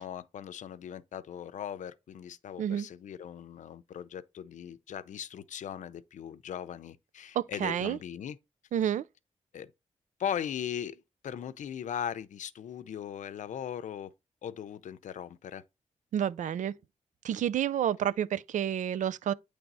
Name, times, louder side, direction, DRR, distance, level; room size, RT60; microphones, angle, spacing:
voice 1, 0.0-8.4 9.5-9.7 10.2-14.1 14.4-15.6, left 9 dB, 90° left, 0.6 m, -39 dB
voice 2, 7.3-8.0 8.7-9.0 16.1-16.7 17.2-19.3, right 10 dB, 90° right, 0.4 m, -29 dB
9.2 x 3.4 x 4.0 m
wide cardioid pair, 135°, 12 cm